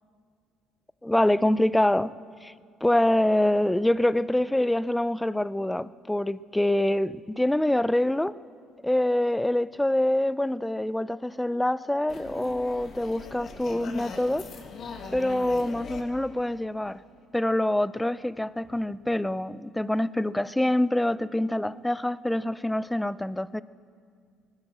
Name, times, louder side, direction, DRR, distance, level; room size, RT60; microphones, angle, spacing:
voice 1, 1.0-2.5 2.8-8.4 8.8-14.5 15.1-17.0 17.3-23.6, left 1 dB, 5° left, 18 dB, 0.4 m, -25 dB
sound 1, 12.1-17.2, left 4 dB, 50° left, 1.7 m, -41 dB
19.5 x 9.7 x 7.6 m, 2.1 s
supercardioid pair, 90°, 0 cm